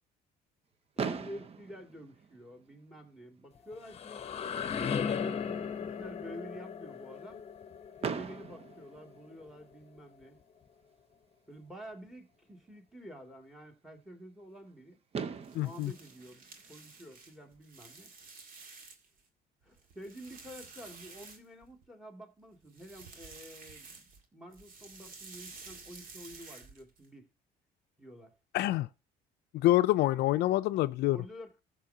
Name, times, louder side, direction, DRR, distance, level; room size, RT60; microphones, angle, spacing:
voice 1, 1.0-4.2 4.8-7.4 8.0-10.4 11.5-15.0 15.6-18.1 19.6-27.3 28.0-28.3 31.1-31.6, equal, ahead, 2.4 m, -49 dB
Fireworks, 1.0-3.0 3.8-3.9 4.1-4.3 4.6-4.7 8.0-9.8 11.5-11.6 14.7-14.8 15.1-17.4, right 6 dB, 35° right, 0.8 m, -40 dB
sound 1, 3.6-9.3, left 7 dB, 35° left, 0.9 m, -37 dB
sound 2, 15.4-19.2 19.6-21.9 22.6-24.2 24.5-27.1, right 4 dB, 55° right, 1.9 m, -51 dB
voice 2, 15.5-15.9 28.5-28.9 29.5-31.2, left 16 dB, 75° left, 0.4 m, -26 dB
15.0 x 6.9 x 2.8 m
cardioid pair, 110°, 17 cm